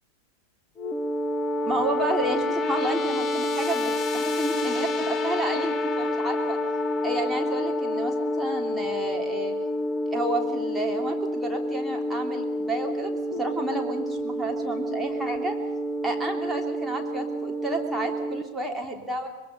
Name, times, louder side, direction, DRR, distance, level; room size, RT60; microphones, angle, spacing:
sound 1, 0.8-18.4, left 1 dB, 25° left, 1.3 m, -28 dB
voice 1, 1.6-6.6 7.0-9.5 10.1-15.6 16.0-19.3, right 1 dB, 5° right, 0 dB, 3.2 m, -31 dB
25.0 x 21.5 x 5.4 m, 1.2 s
figure-of-eight pair, 90°, 0 cm